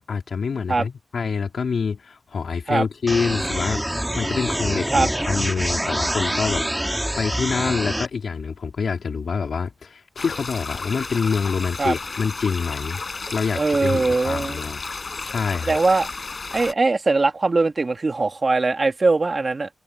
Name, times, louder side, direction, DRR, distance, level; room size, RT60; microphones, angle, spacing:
voice 1, 0.0-3.8 4.2-13.0 13.3-14.8 15.2-15.8, left 5 dB, 90° left, 3.6 m, -26 dB
sound 1, 3.1-8.1, right 1 dB, 10° right, 2.0 m, -25 dB
sound 2, 10.2-16.7, left 3 dB, 50° left, 5.0 m, -33 dB
voice 2, 13.5-14.6 15.6-16.1 16.5-19.7, right 3 dB, 50° right, 2.0 m, -21 dB
open air
wide cardioid pair, 70°, 0 cm